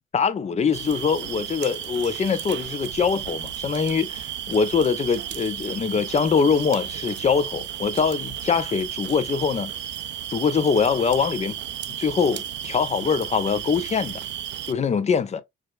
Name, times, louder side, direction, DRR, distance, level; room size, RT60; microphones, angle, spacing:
voice 1, 0.1-9.7 10.3-11.6 12.0-14.2 14.7-15.4, left 6 dB, 35° left, 0.5 m, -23 dB
sound 1, 0.7-14.7, right 11 dB, 65° right, 0.4 m, -33 dB
4.7 x 2.1 x 2.3 m
cardioid pair, 90°, 20 cm